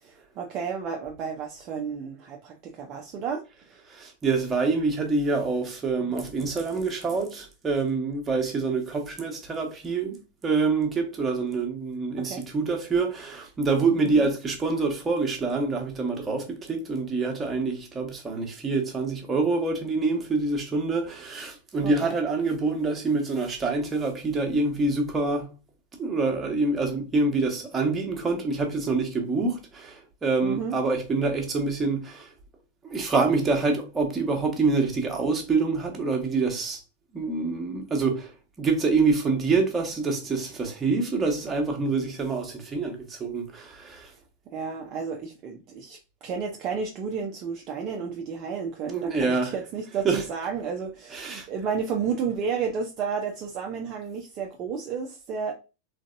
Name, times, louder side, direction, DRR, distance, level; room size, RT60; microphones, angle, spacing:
voice 1, 0.0-3.4 3.7-3.8 12.2-12.4 14.0-14.3 21.8-22.1 30.4-30.7 44.5-46.0 46.2-55.5, right 6 dB, 35° right, 0.6 m, -32 dB
voice 2, 3.9-25.5 26.0-32.3 32.8-36.8 37.1-44.1 48.9-49.5 50.0-50.2 51.1-51.5, right 3 dB, 15° right, 1.2 m, -26 dB
3.9 x 3.3 x 2.6 m
figure-of-eight pair, 90°, 0 cm